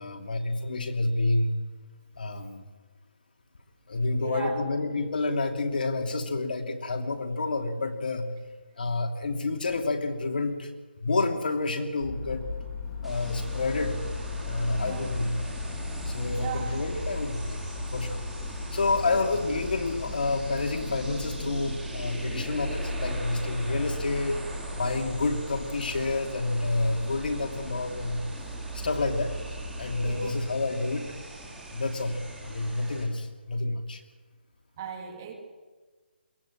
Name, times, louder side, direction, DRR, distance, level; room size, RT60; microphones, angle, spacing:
voice 1, 0.0-1.6 2.2-2.6 3.9-8.3 8.8-10.7 11.0-12.5 13.0-14.0 14.4-15.4 16.1-17.6 17.9-18.2 18.7-24.4 24.7-28.2 28.7-29.4 29.8-31.1 31.7-34.0, left 3 dB, 60° left, 4 dB, 2.8 m, -29 dB
voice 2, 4.2-4.6 14.8-15.0 16.3-16.8 19.1-19.2 30.0-30.3 34.8-35.3, right 7 dB, 20° right, 3 dB, 2.8 m, -37 dB
sound 1, 12.0-30.2, left 2 dB, 15° left, 3.5 m, -37 dB
sound 2, 13.0-33.0, right 1 dB, ahead, 2.7 m, -41 dB
22.5 x 17.5 x 8.7 m, 1.4 s
hypercardioid pair, 170°, 6 cm